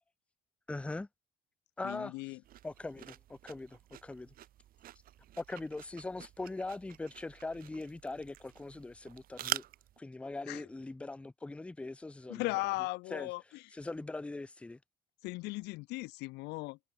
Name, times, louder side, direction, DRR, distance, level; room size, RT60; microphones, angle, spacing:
voice 1, 0.7-1.1 1.8-2.1 2.6-4.3 5.4-9.6 10.0-12.4 13.1-13.3 13.7-14.8, left 2 dB, 5° left, 0.4 m, -41 dB
voice 2, 1.8-2.4 10.5-10.6 12.3-13.7 15.2-16.8, left 23 dB, 90° left, 0.4 m, -37 dB
sound 1, 2.4-10.0, right 13 dB, 60° right, 0.8 m, -45 dB
cardioid pair, 110°, 17 cm